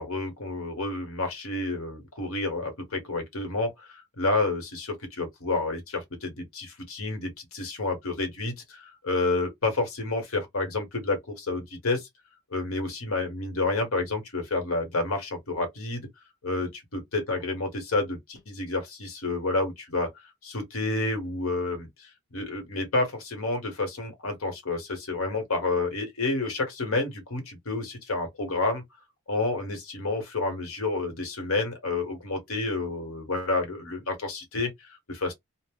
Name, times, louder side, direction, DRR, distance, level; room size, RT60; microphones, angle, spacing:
voice 1, 0.0-12.1 12.5-16.1 16.4-20.1 20.4-28.8 29.3-35.3, left 3 dB, 80° left, 1.1 m, -29 dB
2.6 x 2.0 x 3.5 m
head